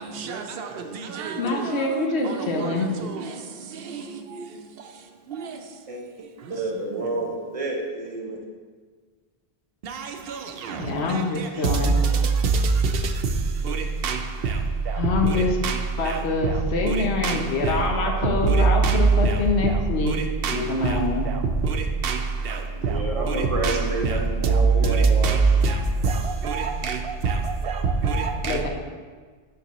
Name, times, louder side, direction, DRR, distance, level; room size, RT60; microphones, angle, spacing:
voice 1, 0.1-0.7 1.1-3.3 4.0-4.1 9.8-10.4 10.7-10.8 11.1-11.7 13.6-14.6 15.2-15.4 15.6-15.8 16.1-16.5 16.8-17.8 18.4-18.6 18.8-19.4 19.6-19.7 20.0-21.0 21.6-22.2 22.4-22.9 23.2-24.2 24.4-24.5 24.8-26.2 26.4-27.0 27.2-27.4 27.6-28.6, right 4 dB, 70° right, 5 dB, 0.8 m, -25 dB
voice 2, 1.4-2.9 10.8-12.0 15.0-15.5 16.0-20.2 20.5-21.3 28.5-28.7, left 3 dB, 85° left, 2 dB, 1.1 m, -25 dB
voice 3, 6.5-8.4 22.7-25.4, right 2 dB, 35° right, 0 dB, 0.8 m, -29 dB
6.6 x 5.2 x 3.0 m, 1.5 s
omnidirectional pair, 1.1 m